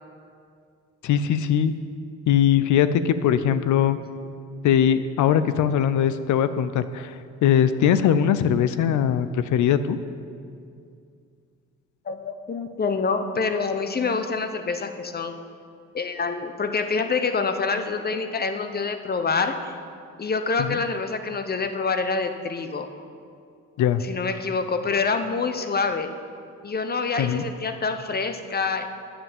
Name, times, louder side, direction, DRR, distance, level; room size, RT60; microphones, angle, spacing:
voice 1, 1.0-1.7 2.3-4.0 4.6-7.1 7.4-10.0 20.6-20.8 23.8-24.0 27.2-27.4, left 9 dB, 75° left, 13 dB, 0.6 m, -21 dB
voice 2, 12.1-15.3 15.9-19.7 20.2-22.9 24.0-26.1 26.6-28.9, left 4 dB, 30° left, 8 dB, 0.8 m, -26 dB
8.6 x 7.3 x 7.3 m, 2.3 s
cardioid pair, 90°, 30 cm